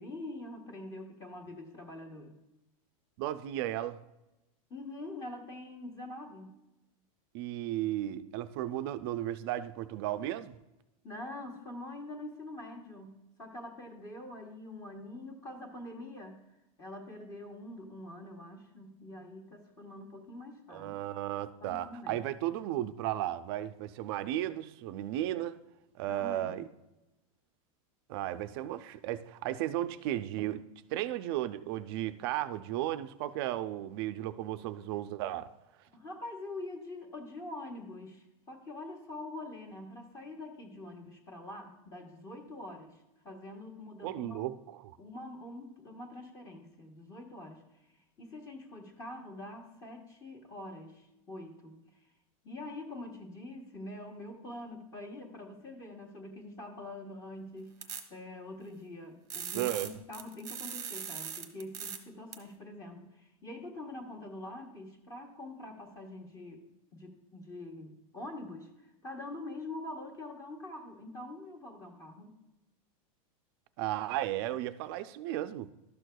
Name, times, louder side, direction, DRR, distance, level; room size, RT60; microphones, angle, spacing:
voice 1, 0.0-2.3 4.7-6.6 11.0-16.4 16.8-20.9 21.6-22.3 26.1-26.6 35.9-44.4 45.0-47.6 48.2-51.8 52.4-66.6 66.9-72.4, left 2 dB, 20° left, 3 dB, 1.1 m, -45 dB
voice 2, 3.2-4.0 7.3-10.6 20.7-25.6 25.9-26.7 28.1-30.6 30.9-35.5 44.0-44.8 59.5-59.9 73.8-75.7, right 13 dB, 45° right, 11 dB, 0.4 m, -34 dB
sound 1, 57.8-58.0 59.3-62.0 62.3-62.4, right 7 dB, 20° right, 0.9 m, -39 dB
12.5 x 6.3 x 2.2 m, 0.95 s
supercardioid pair, 160°, 18 cm